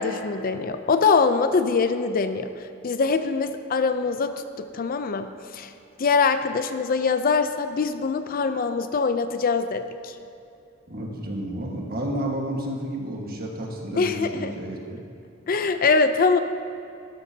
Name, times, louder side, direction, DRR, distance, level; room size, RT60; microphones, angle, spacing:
voice 1, 0.0-5.7 6.0-10.1 13.9-14.5 15.5-16.4, left 4 dB, 45° left, 9 dB, 0.5 m, -23 dB
voice 2, 10.9-15.0, right 1 dB, 50° right, -1 dB, 1.5 m, -31 dB
12.5 x 12.0 x 2.8 m, 2.7 s
head